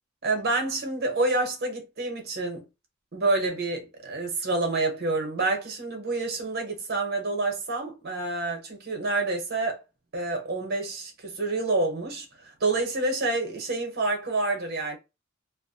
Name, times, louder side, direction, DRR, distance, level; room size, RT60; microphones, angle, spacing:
voice 1, 0.2-2.6 3.1-9.8 10.1-15.0, right 2 dB, 50° right, 0.8 m, -28 dB
2.3 x 2.1 x 2.6 m
head